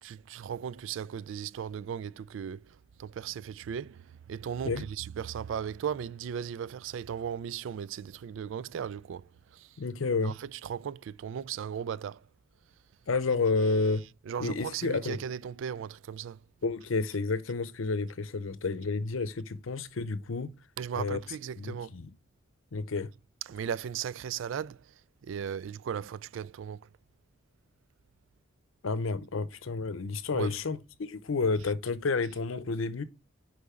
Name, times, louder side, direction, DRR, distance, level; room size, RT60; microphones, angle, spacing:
voice 1, 0.0-9.7 10.2-12.2 14.3-16.4 20.8-21.9 23.5-24.8 25.2-26.9 30.3-30.6, right 8 dB, 70° right, 0.3 m, -37 dB
voice 2, 9.8-10.4 13.1-14.0 14.4-15.2 16.6-20.5 21.0-21.2 21.6-22.1 22.7-23.1 28.8-33.0, left 3 dB, 85° left, 0.7 m, -30 dB
6.8 x 5.1 x 3.6 m
head